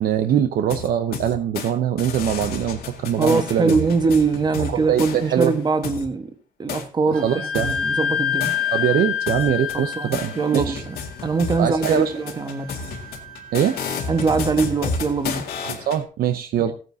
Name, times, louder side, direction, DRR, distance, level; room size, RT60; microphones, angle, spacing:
voice 1, 0.0-3.8 4.7-5.5 7.2-7.7 8.7-10.8 11.6-12.1 13.5-13.8 15.6-16.7, right 9 dB, 75° right, 0.7 m, -22 dB
sound 1, 0.7-1.7 2.0-6.1 6.7-6.8 7.5-9.0 9.3-16.0, left 5 dB, 90° left, 2.1 m, -32 dB
voice 2, 3.2-6.3 6.6-8.5 9.7-12.7 14.1-15.5 16.6-16.7, right 4 dB, 25° right, 1.3 m, -22 dB
Wind instrument woodwind instrument, 7.1-14.6, left 8 dB, 50° right, 2.1 m, -29 dB
16.5 x 9.0 x 2.7 m
cardioid pair, 125°, 16 cm